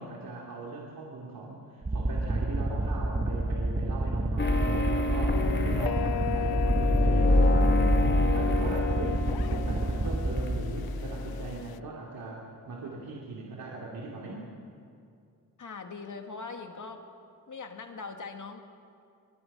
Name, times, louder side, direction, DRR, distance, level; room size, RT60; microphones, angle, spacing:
voice 1, 0.0-9.2 9.5-14.4, right 3 dB, 75° right, -3 dB, 2.9 m, -40 dB
sound 1, 1.8-10.6, right 2 dB, 25° right, 1.6 m, -29 dB
sound 2, 4.4-10.1 10.4-11.5, left 1 dB, 30° left, 2.3 m, -27 dB
sound 3, 5.3-11.8, left 14 dB, 85° left, 0.5 m, -35 dB
voice 2, 15.6-17.1 17.5-18.6, left 4 dB, 55° left, 5 dB, 2.3 m, -41 dB
24.5 x 20.5 x 5.5 m, 2.4 s
cardioid pair, 60°, 36 cm